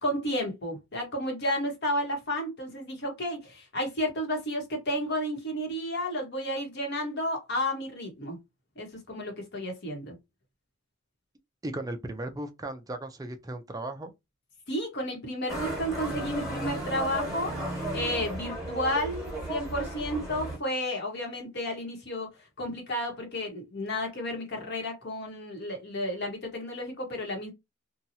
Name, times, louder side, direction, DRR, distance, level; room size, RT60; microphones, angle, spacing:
voice 1, 0.0-8.4 8.8-10.2 14.7-17.5 17.9-22.3 22.6-27.5, left 1 dB, 55° left, 1.1 m, -32 dB
voice 2, 11.6-14.1, right 1 dB, 20° right, 0.5 m, -36 dB
Motorcycle, 15.5-20.6, right 1 dB, ahead, 1.6 m, -34 dB
2.8 x 2.3 x 2.7 m
head